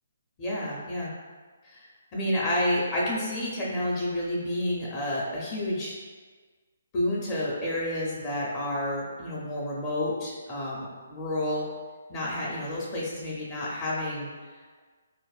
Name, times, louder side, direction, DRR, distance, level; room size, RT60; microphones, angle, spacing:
voice 1, 0.4-1.1 1.6-5.9 6.9-11.7 12.1-14.8, left 1 dB, 30° left, -6 dB, 0.6 m, -30 dB
4.0 x 2.5 x 2.4 m, 1.5 s
hypercardioid pair, 155°, 0 cm